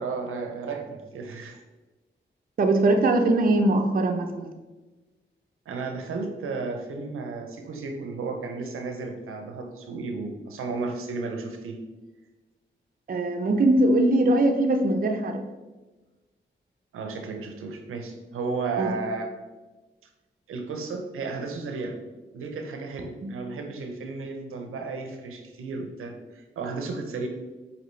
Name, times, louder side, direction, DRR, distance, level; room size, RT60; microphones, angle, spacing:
voice 1, 0.0-1.6 5.7-11.8 16.9-19.3 20.5-21.9 22.3-27.3, right 4 dB, 90° right, 4 dB, 0.6 m, -33 dB
voice 2, 2.6-4.5 13.1-15.4 18.8-18.9 23.2-23.3, right 2 dB, 45° right, 4 dB, 0.5 m, -21 dB
5.2 x 2.8 x 3.1 m, 1.2 s
supercardioid pair, 40°, 21 cm